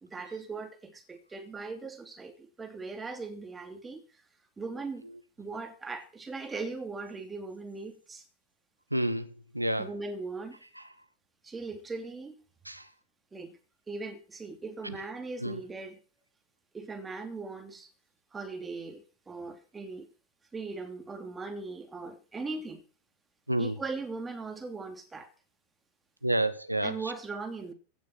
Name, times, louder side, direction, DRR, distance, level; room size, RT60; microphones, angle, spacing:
voice 1, 0.0-4.0 4.6-5.1 5.4-8.2 9.8-10.6 11.4-12.4 13.3-13.6 13.9-16.0 16.7-17.9 18.3-20.1 20.5-22.8 23.6-25.3 26.8-27.7, right 3 dB, 15° right, 2.9 m, -39 dB
voice 2, 8.9-9.9 12.7-12.8 15.4-15.6 23.5-23.7 26.2-27.0, right 1 dB, 85° right, 1.3 m, -29 dB
16.0 x 7.1 x 8.0 m
figure-of-eight pair, 90°, 0 cm